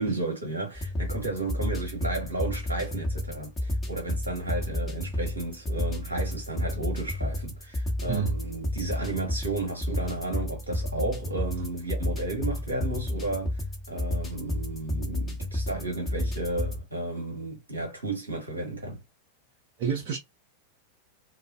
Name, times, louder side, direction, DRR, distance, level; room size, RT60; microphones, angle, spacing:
voice 1, 0.0-13.6 13.9-19.0, right 2 dB, 75° right, 0.9 m, -33 dB
sound 1, 0.7-16.8, left 1 dB, 15° left, 1.1 m, -31 dB
voice 2, 19.8-20.2, right 7 dB, 45° right, 0.6 m, -28 dB
2.4 x 2.4 x 2.2 m
figure-of-eight pair, 90°, 0 cm